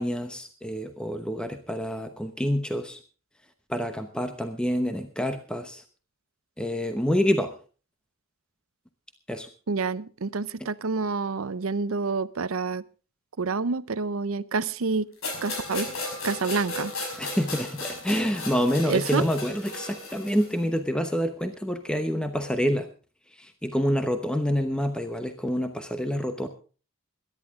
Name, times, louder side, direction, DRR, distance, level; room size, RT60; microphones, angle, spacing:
voice 1, 0.0-3.0 3.7-5.8 6.6-7.6 9.3-9.5 17.2-22.9 23.4-26.5, equal, 5° left, 7 dB, 0.9 m, -27 dB
voice 2, 9.7-12.8 13.4-15.1 15.4-15.9 16.2-16.9 18.9-19.2, right 4 dB, 85° right, 17 dB, 0.7 m, -28 dB
sound 1, 15.2-20.6, left 2 dB, 85° left, 5.5 m, -35 dB
22.0 x 11.0 x 3.7 m, 0.37 s
head